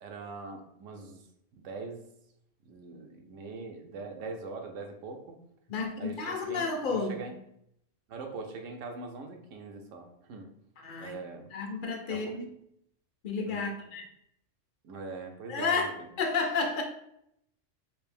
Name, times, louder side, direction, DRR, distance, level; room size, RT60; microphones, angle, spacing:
voice 1, 0.0-1.2 1.5-2.0 2.7-5.4 6.0-7.3 8.1-10.5 11.0-11.5 12.1-12.3 13.5-13.6 14.8-16.1, right 3 dB, 80° right, 4 dB, 1.0 m, -42 dB
voice 2, 5.7-7.3 10.8-11.2 11.5-12.5 13.2-14.0 15.5-15.9 16.2-16.8, left 4 dB, 55° left, 3 dB, 0.6 m, -31 dB
3.4 x 2.6 x 3.3 m, 0.75 s
omnidirectional pair, 1.3 m